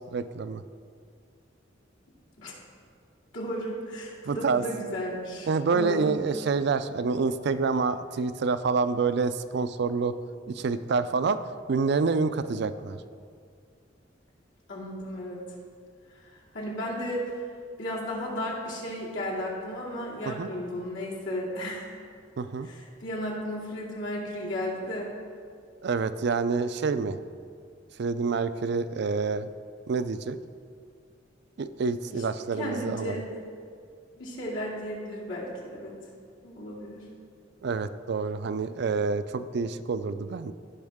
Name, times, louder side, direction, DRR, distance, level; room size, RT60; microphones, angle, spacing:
voice 1, 0.1-0.6 4.3-4.6 5.5-10.1 10.5-11.4 11.7-13.0 20.3-20.5 22.4-22.7 25.8-27.2 28.0-29.5 29.9-30.4 31.6-33.2 37.6-40.5, right 4 dB, 60° right, 12 dB, 0.4 m, -27 dB
voice 2, 3.3-6.2 14.7-15.4 16.5-17.3 17.8-21.9 22.6-25.1 32.6-33.3 34.2-35.9 36.4-37.1, equal, 80° left, -5 dB, 2.6 m, -34 dB
16.5 x 5.6 x 3.6 m, 2.2 s
head